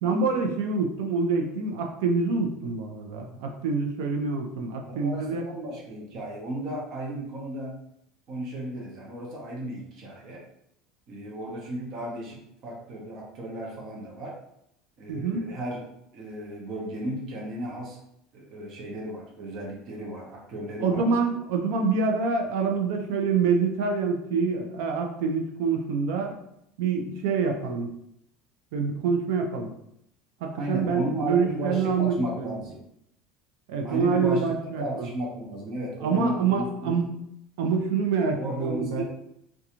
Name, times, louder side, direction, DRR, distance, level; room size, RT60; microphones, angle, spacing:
voice 1, 0.0-5.4 15.1-15.5 20.8-26.3 26.8-27.9 28.7-29.7 30.4-32.6 33.7-35.1 36.0-37.0 37.6-39.0, right 5 dB, 75° right, 3 dB, 0.5 m, -26 dB
voice 2, 4.9-7.7 8.3-10.4 11.1-14.3 15.0-15.8 16.1-18.0 18.3-21.0 30.5-32.8 33.8-34.4 34.8-36.9 38.4-39.0, right 1 dB, 40° right, -2 dB, 0.7 m, -34 dB
2.5 x 2.2 x 2.9 m, 0.77 s
cardioid pair, 165°, 0 cm